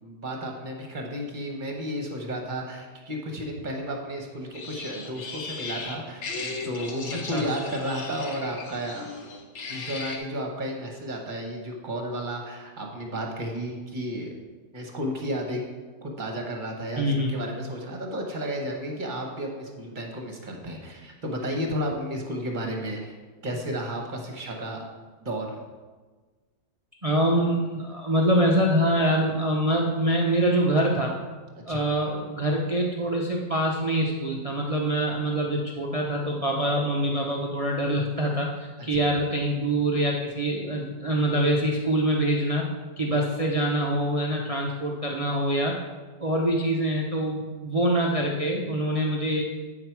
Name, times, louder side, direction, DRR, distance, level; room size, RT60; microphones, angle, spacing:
voice 1, 0.0-9.1 9.7-14.3 14.7-15.6 16.0-23.1 23.4-24.8 25.2-25.6 31.7-31.9 38.9-39.0, equal, 30° right, 1 dB, 1.1 m, -32 dB
sound 1, 4.5-10.2, left 4 dB, 50° left, 1.0 m, -37 dB
voice 2, 17.0-17.4 27.0-31.1 31.7-42.7 43.0-45.8 46.2-49.4, right 1 dB, 60° right, -1 dB, 0.3 m, -25 dB
8.7 x 5.8 x 4.6 m, 1.3 s
omnidirectional pair, 1.9 m